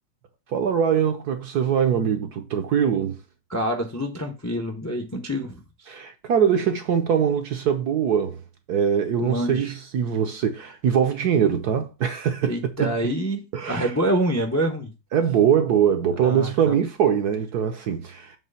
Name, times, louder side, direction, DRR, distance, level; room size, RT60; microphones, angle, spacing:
voice 1, 0.5-3.2 5.9-8.4 8.7-12.5 12.8-12.9 13.5-13.9 15.1-18.4, right 8 dB, 65° right, 1.1 m, -22 dB
voice 2, 3.5-6.0 9.2-9.7 12.4-14.9 16.2-16.8, right 1 dB, 25° left, 0.3 m, -27 dB
7.5 x 3.3 x 5.5 m
omnidirectional pair, 2.3 m